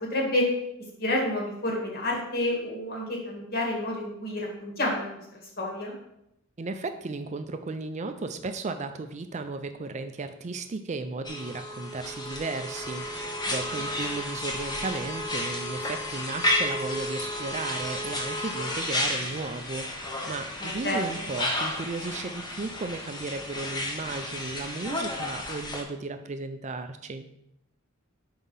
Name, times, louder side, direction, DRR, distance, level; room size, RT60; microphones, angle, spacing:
voice 1, 0.1-0.4 1.0-5.2 5.6-5.9 20.6-21.0, left 1 dB, 45° left, -1 dB, 2.0 m, -29 dB
voice 2, 6.6-27.2, right 3 dB, 35° right, 8 dB, 0.4 m, -35 dB
sound 1, 11.2-25.8, left 1 dB, 20° left, 0.9 m, -32 dB
5.5 x 4.8 x 5.5 m, 0.81 s
head